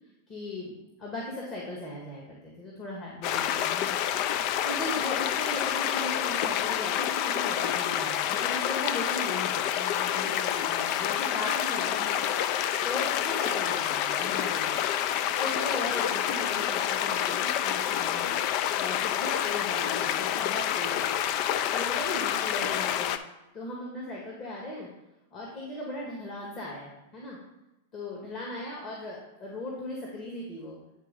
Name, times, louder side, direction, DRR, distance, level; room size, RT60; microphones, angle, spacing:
voice 1, 0.3-4.0 4.4-12.2 12.8-14.8 15.4-18.3 18.7-21.3 21.7-23.1 23.5-24.9 25.3-27.4 27.9-30.8, left 1 dB, 35° left, -3 dB, 1.6 m, -38 dB
sound 1, 3.2-23.2, left 10 dB, 50° left, 0.4 m, -28 dB
9.1 x 3.4 x 5.3 m, 0.95 s
hypercardioid pair, 110°, 0 cm